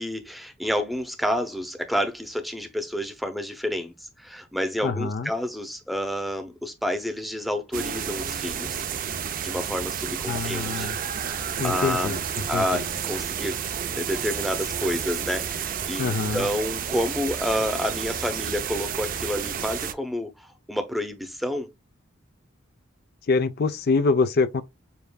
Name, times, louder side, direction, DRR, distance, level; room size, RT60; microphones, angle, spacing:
voice 1, 0.0-8.9 9.4-10.9 11.2-12.2 12.5-13.6 13.9-21.7, equal, ahead, 0.6 m, -29 dB
voice 2, 4.8-5.3 10.3-11.0 11.6-12.8 16.0-16.5 23.3-24.6, left 4 dB, 50° left, 0.4 m, -25 dB
sound 1, 7.7-19.9, right 8 dB, 45° right, 0.4 m, -31 dB
7.0 x 2.5 x 2.2 m
head